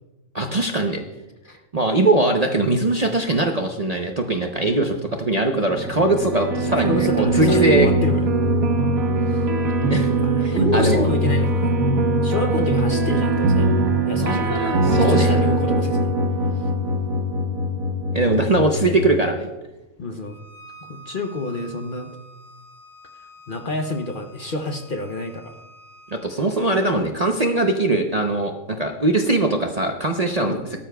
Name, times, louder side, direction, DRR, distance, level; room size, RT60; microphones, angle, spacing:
voice 1, 0.3-1.0 1.7-7.9 9.9-10.1 10.4-11.1 14.2-15.4 18.1-19.5 26.1-30.5, right 2 dB, 40° right, 3 dB, 0.6 m, -21 dB
sound 1, 5.7-19.1, right 2 dB, 75° right, 1.4 m, -21 dB
voice 2, 6.5-8.2 9.3-9.5 10.1-11.8 12.2-13.7 14.1-14.7 15.0-16.1 20.0-20.4 20.9-22.1 23.5-25.5 30.4-30.7, left 2 dB, 45° left, 5 dB, 0.8 m, -28 dB
Bowed string instrument, 20.2-26.3, right 1 dB, 75° left, 4.4 m, -47 dB
17.0 x 13.0 x 2.3 m, 1.0 s
omnidirectional pair, 1.5 m